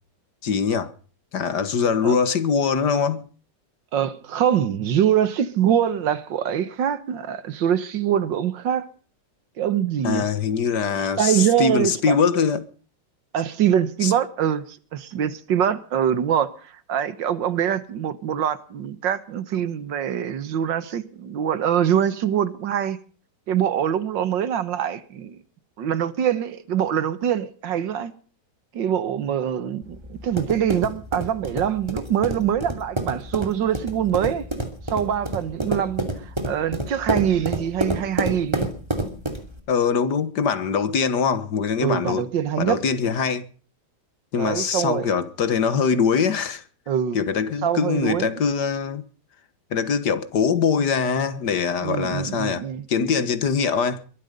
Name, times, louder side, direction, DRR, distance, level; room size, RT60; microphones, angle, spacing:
voice 1, 0.4-0.9 1.3-3.3 10.0-12.7 14.0-14.1 39.7-42.3 42.6-43.4 44.3-46.6 47.1-49.0 49.7-54.0, left 6 dB, 65° left, 1.9 m, -23 dB
voice 2, 3.9-8.9 9.6-10.2 11.2-12.2 13.3-23.0 23.5-25.4 25.8-28.1 28.7-34.5 34.9-38.7 41.8-42.8 44.4-45.1 46.9-47.2 47.6-48.3 51.8-52.8, right 9 dB, 90° right, 1.9 m, -24 dB
sound 1, 29.8-39.6, right 1 dB, 15° right, 2.8 m, -28 dB
22.5 x 12.5 x 5.2 m
omnidirectional pair, 1.9 m